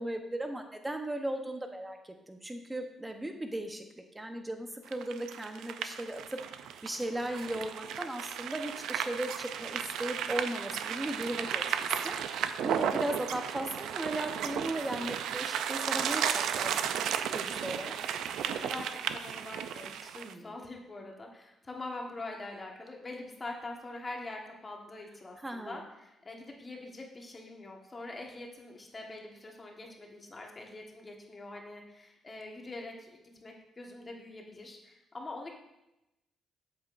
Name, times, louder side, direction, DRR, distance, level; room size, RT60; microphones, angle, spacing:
voice 1, 0.0-3.8 4.1-6.2 6.8-18.0 20.2-20.5 25.4-25.8, right 1 dB, 15° right, 5 dB, 0.9 m, -37 dB
sound 1, 4.9-20.3, right 9 dB, 85° right, 0.4 m, -34 dB
voice 2, 18.4-35.5, left 2 dB, 25° left, 0 dB, 1.3 m, -44 dB
8.0 x 7.4 x 2.5 m, 0.92 s
cardioid pair, 90°, 0 cm